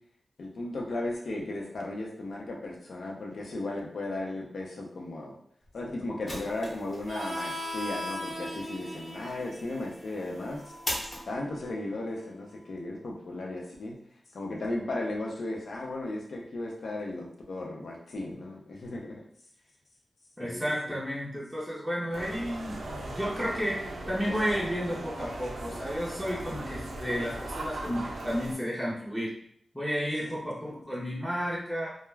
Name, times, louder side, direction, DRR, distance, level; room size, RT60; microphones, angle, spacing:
voice 1, 0.4-5.3 5.7-10.7 11.2-14.0 14.3-19.2 20.4-21.0 30.2-30.4 30.7-30.8, left 2 dB, 70° left, -2 dB, 0.6 m, -36 dB
sound 1, 5.6-11.7, left 1 dB, 35° left, 0.8 m, -42 dB
Harmonica, 7.0-12.3, left 1 dB, 40° right, 0.6 m, -40 dB
voice 2, 20.4-29.4 29.7-32.0, equal, 5° left, -6 dB, 0.6 m, -32 dB
sound 2, 22.1-28.5, right 1 dB, 80° right, 0.5 m, -38 dB
2.3 x 2.1 x 3.2 m, 0.66 s
wide cardioid pair, 135°, 0 cm